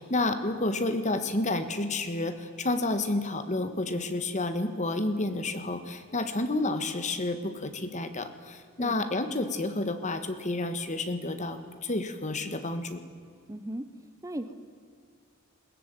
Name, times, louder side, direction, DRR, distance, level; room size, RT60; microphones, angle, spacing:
voice 1, 0.0-13.0, left 2 dB, 35° left, 9 dB, 1.7 m, -30 dB
voice 2, 13.5-13.9 14.2-14.5, right 1 dB, 15° right, 10 dB, 0.9 m, -37 dB
21.5 x 18.0 x 9.1 m, 2.1 s
head